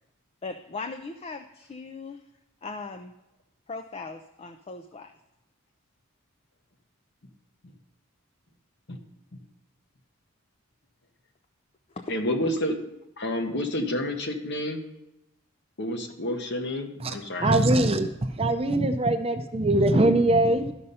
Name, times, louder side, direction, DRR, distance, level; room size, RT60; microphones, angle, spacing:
voice 1, 0.4-2.2 2.6-3.1 3.7-5.1 11.9-12.1, left 3 dB, 25° left, 7 dB, 0.4 m, -38 dB
voice 2, 12.1-12.8 13.2-14.8 15.8-17.6, left 1 dB, 50° left, 5 dB, 1.1 m, -29 dB
voice 3, 17.4-20.7, right 1 dB, 25° right, 8 dB, 0.6 m, -22 dB
12.0 x 5.4 x 5.5 m, 0.91 s
head